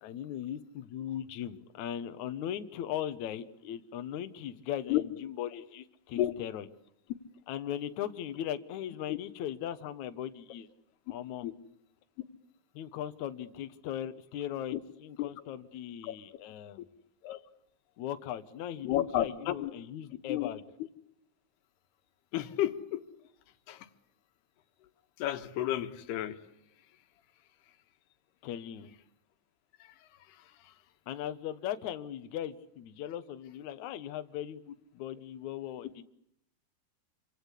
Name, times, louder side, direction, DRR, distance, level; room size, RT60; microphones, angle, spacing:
voice 1, 0.0-6.7 7.5-10.7 11.1-11.5 12.7-16.9 18.0-20.6 28.4-28.9 31.1-36.0, left 10 dB, 60° left, 10 dB, 2.2 m, -38 dB
voice 2, 18.8-19.7 20.3-20.5 22.3-23.0 23.7-23.9 25.2-26.4 29.8-29.9, left 13 dB, 90° left, 9 dB, 3.4 m, -31 dB
28.0 x 25.0 x 8.3 m, 0.74 s
omnidirectional pair, 4.5 m